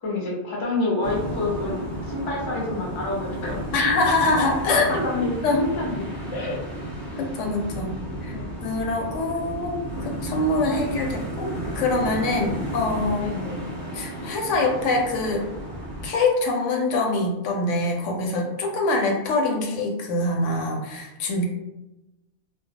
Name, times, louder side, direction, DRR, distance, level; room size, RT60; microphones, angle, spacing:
voice 1, 0.0-3.6 4.7-6.6 8.3-8.5 10.7-10.8 12.4-12.6 13.2-13.7, left 2 dB, 40° left, -3 dB, 0.4 m, -28 dB
sound 1, 1.0-16.1, right 1 dB, 20° right, 0.7 m, -33 dB
voice 2, 3.7-5.0 5.4-5.6 7.2-7.9 8.2-8.4 8.6-11.5 11.8-13.3 13.9-15.5 16.0-21.4, left 2 dB, 80° left, 1 dB, 0.9 m, -24 dB
2.2 x 2.0 x 2.7 m, 0.96 s
omnidirectional pair, 1.3 m